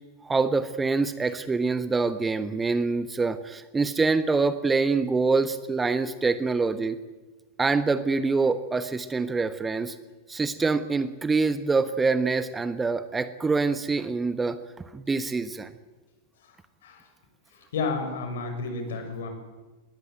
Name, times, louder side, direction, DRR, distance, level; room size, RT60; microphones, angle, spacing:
voice 1, 0.2-7.0 7.6-10.0 10.3-14.6 14.9-15.7, right 4 dB, 15° right, 12 dB, 1.1 m, -25 dB
voice 2, 17.5-19.3, left 4 dB, 60° left, 6 dB, 6.3 m, -32 dB
21.5 x 20.0 x 9.1 m, 1.2 s
figure-of-eight pair, 90°, 0 cm